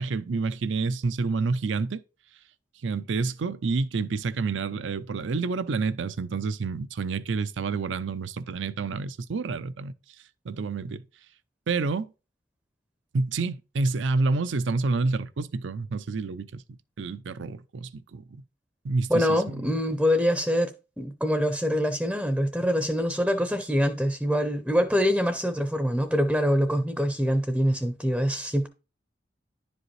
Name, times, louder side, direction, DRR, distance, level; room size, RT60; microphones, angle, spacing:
voice 1, 0.0-2.0 2.8-9.9 10.5-11.0 11.7-12.1 13.1-16.6 17.0-18.2 18.8-19.4, right 4 dB, 70° right, 0.5 m, -28 dB
voice 2, 19.1-20.7 21.0-28.7, equal, 5° right, 0.6 m, -24 dB
10.5 x 5.1 x 3.2 m
head